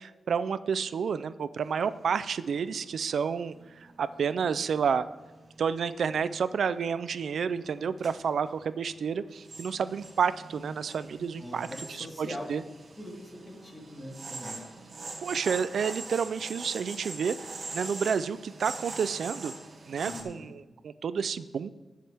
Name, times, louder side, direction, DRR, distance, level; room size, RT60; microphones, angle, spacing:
voice 1, 0.0-5.1 5.6-11.7 12.2-12.6 15.2-17.3 17.7-19.5 19.9-21.7, right 6 dB, 75° right, 14 dB, 0.4 m, -30 dB
sound 1, 1.6-20.2, right 3 dB, 55° right, 2.2 m, -44 dB
voice 2, 11.4-12.4 12.9-14.6 20.0-20.5, left 1 dB, 20° left, -3 dB, 3.8 m, -42 dB
20.0 x 7.4 x 3.5 m, 1.1 s
wide cardioid pair, 100°, 0 cm